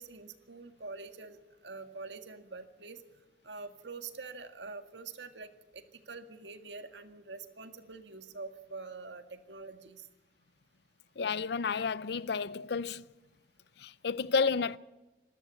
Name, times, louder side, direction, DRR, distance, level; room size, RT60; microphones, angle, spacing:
voice 1, 0.0-3.0 3.4-10.1, right 4 dB, 80° right, 1.8 m, -45 dB
voice 2, 11.2-13.1 13.8-14.8, left 5 dB, 65° left, 0.6 m, -31 dB
26.0 x 13.5 x 8.4 m
head